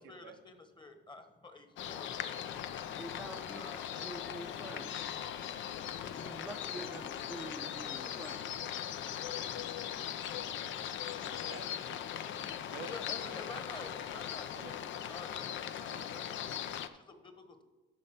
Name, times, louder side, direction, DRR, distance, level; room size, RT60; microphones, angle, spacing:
voice 1, 0.0-3.0 3.5-4.2 12.1-14.6 15.1-17.6, left 2 dB, 25° left, 7 dB, 1.2 m, -51 dB
sound 1, 1.8-16.9, left 9 dB, 75° left, 0.5 m, -39 dB
voice 2, 3.0-4.9 6.1-8.5, right 1 dB, ahead, 3 dB, 0.5 m, -47 dB
voice 3, 6.7-7.1 7.4-8.2 11.3-12.9 13.3-13.4 14.5-15.0 15.9-16.1, right 10 dB, 90° right, 7 dB, 0.7 m, -53 dB
12.5 x 4.2 x 5.6 m, 1.2 s
cardioid pair, 90°, 20 cm